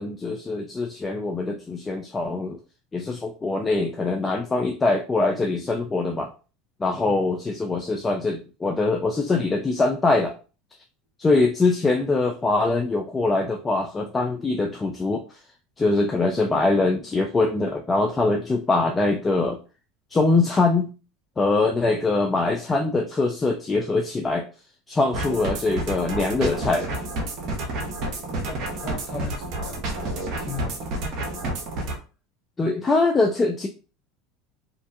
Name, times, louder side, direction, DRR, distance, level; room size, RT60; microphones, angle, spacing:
voice 1, 0.0-2.6 2.9-6.3 6.8-10.3 11.2-15.2 15.8-19.6 20.1-20.9 21.4-24.4 24.9-26.9 32.6-33.7, left 3 dB, 25° left, 0.4 m, -23 dB
sound 1, 25.1-32.0, right 2 dB, 55° right, 0.7 m, -30 dB
voice 2, 28.4-31.3, left 4 dB, 40° left, 1.0 m, -38 dB
2.5 x 2.2 x 2.6 m
hypercardioid pair, 80°, 0 cm